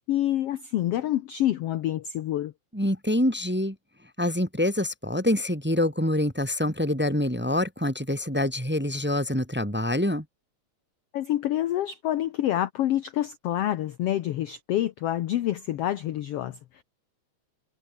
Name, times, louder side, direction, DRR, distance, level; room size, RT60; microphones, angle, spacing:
voice 1, 0.0-2.5 11.1-16.8, left 13 dB, 70° left, 1.5 m, -27 dB
voice 2, 2.7-3.8 4.2-10.2, left 1 dB, 5° right, 1.9 m, -26 dB
omnidirectional pair, 3.6 m